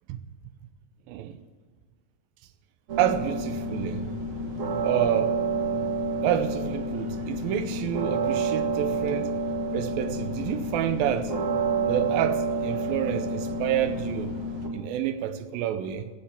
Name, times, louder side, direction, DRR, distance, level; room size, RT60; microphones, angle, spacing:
voice 1, 1.1-1.4 3.0-4.1 4.8-5.4 5.7-5.8 6.2-9.3 9.7-11.3 11.8-14.4 14.7-16.1, right 10 dB, 85° right, 2.5 m, -29 dB
sound 1, 2.9-14.7, right 3 dB, 50° right, 1.7 m, -29 dB
15.0 x 7.5 x 7.3 m
omnidirectional pair, 4.2 m